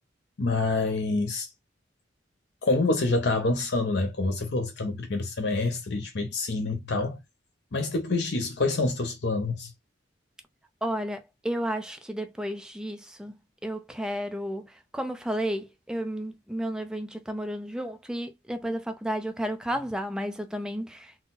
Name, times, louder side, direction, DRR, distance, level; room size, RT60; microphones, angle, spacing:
voice 1, 0.4-1.5 2.6-7.2 7.7-9.7, left 3 dB, 60° left, 0.7 m, -27 dB
voice 2, 10.8-13.3 13.6-21.2, equal, 5° right, 0.5 m, -32 dB
3.8 x 2.1 x 4.1 m
head